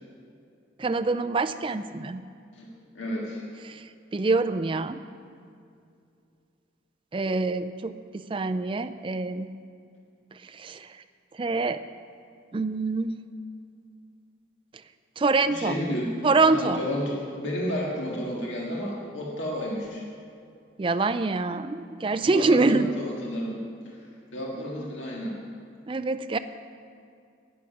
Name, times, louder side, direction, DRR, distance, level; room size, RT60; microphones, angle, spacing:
voice 1, 0.8-2.2 3.6-3.8 4.1-5.0 7.1-9.5 10.4-10.9 11.4-11.8 12.5-13.2 15.2-15.8 16.2-16.8 20.8-23.0 24.5-24.9 25.9-26.4, right 3 dB, 25° right, 9 dB, 0.3 m, -25 dB
voice 2, 3.0-3.4 15.5-16.1 16.5-20.0 22.1-24.0 24.3-25.4, equal, 80° left, -3 dB, 1.8 m, -32 dB
11.0 x 9.9 x 5.8 m, 2.4 s
head